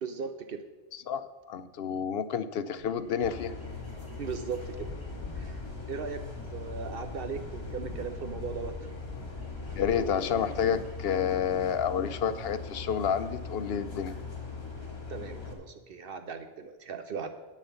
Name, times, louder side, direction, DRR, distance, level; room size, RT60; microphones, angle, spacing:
voice 1, 0.0-0.6 4.2-4.9 5.3-6.2 6.5-8.7 15.1-17.3, right 6 dB, 65° right, 8 dB, 0.9 m, -38 dB
voice 2, 0.9-3.6 9.7-14.1, left 7 dB, 75° left, 13 dB, 0.8 m, -30 dB
sound 1, 2.8-10.9, left 2 dB, 10° right, 4.0 m, -45 dB
sound 2, 3.2-15.5, left 4 dB, 25° left, 1.5 m, -41 dB
9.4 x 7.3 x 6.8 m, 1.2 s
omnidirectional pair, 1.1 m